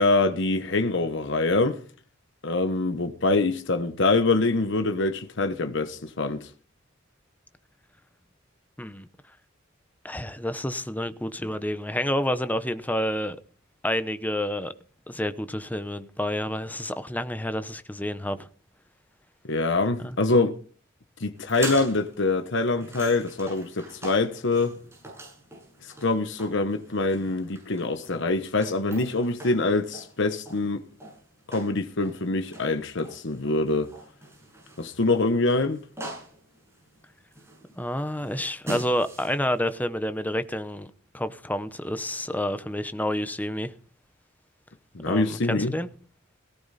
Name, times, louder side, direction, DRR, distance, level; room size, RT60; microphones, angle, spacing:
voice 1, 0.0-1.8 2.4-6.5 19.5-20.5 21.2-24.8 26.0-30.8 31.5-33.9 34.8-35.8 44.9-45.7, left 3 dB, 65° left, 1.1 m, -24 dB
voice 2, 10.0-13.4 13.8-14.7 15.1-18.5 20.0-20.1 37.8-43.7 45.0-45.9, left 1 dB, 10° left, 0.9 m, -29 dB
sound 1, 21.4-39.6, right 2 dB, 15° right, 7.4 m, -42 dB
17.5 x 15.5 x 4.2 m
head